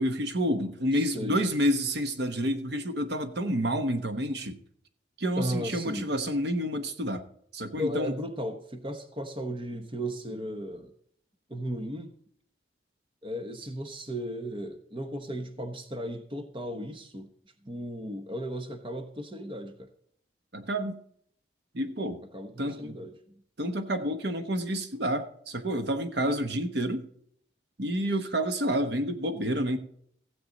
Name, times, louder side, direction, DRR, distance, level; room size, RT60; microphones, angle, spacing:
voice 1, 0.0-4.6 5.2-7.2 7.5-8.1 20.5-21.0 21.7-22.2 22.6-23.0 23.6-27.1 27.8-29.8, equal, 65° right, 8 dB, 1.1 m, -29 dB
voice 2, 0.9-1.4 5.4-6.1 7.8-10.9 11.5-12.1 13.2-17.3 17.6-19.9 22.3-23.1, equal, 25° right, 7 dB, 1.1 m, -35 dB
15.5 x 7.8 x 4.0 m, 0.65 s
head